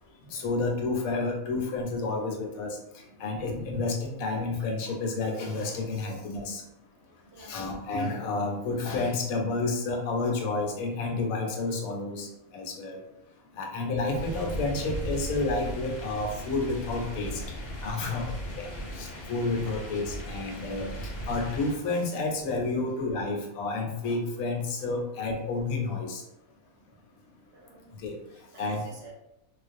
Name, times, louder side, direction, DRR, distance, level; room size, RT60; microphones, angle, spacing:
voice 1, 0.3-6.6 7.4-12.3 12.5-13.0 13.6-17.4 17.8-20.9 21.3-26.2 28.0-28.1 28.6-28.9, left 3 dB, 80° left, 2 dB, 1.0 m, -30 dB
voice 2, 6.9-7.7 8.3-8.5 13.5-13.6 17.9-18.9 19.5-19.7 27.5-28.0 28.3-29.1, right 3 dB, 60° right, -2 dB, 0.7 m, -52 dB
sound 1, 14.1-21.7, equal, 60° left, 0.7 m, -37 dB
2.4 x 2.1 x 2.5 m, 0.82 s
omnidirectional pair, 1.5 m